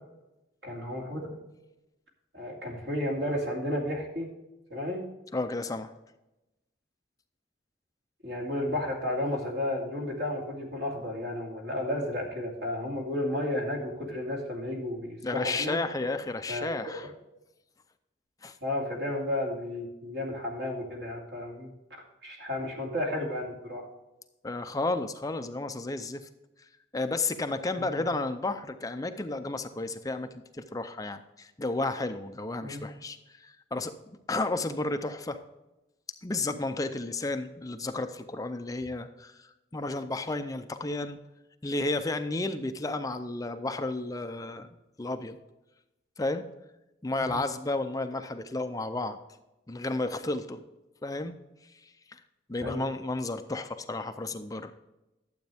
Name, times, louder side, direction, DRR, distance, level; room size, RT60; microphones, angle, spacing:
voice 1, 0.6-1.4 2.3-4.3 4.7-5.0 8.2-15.8 16.5-16.7 18.6-21.7 22.2-23.9 27.8-28.0 32.6-32.9 47.2-47.3 52.6-52.9, left 1 dB, 75° right, -1 dB, 2.6 m, -32 dB
voice 2, 5.3-5.9 15.2-17.1 18.4-18.6 24.4-26.3 26.9-30.3 30.5-34.0 34.3-35.4 36.2-41.2 41.6-44.7 45.0-45.4 46.2-46.5 47.0-49.2 49.7-50.6 51.0-51.4 51.8-51.9 52.5-54.7, left 2 dB, 20° left, 8 dB, 0.5 m, -32 dB
12.0 x 7.9 x 3.5 m, 0.96 s
head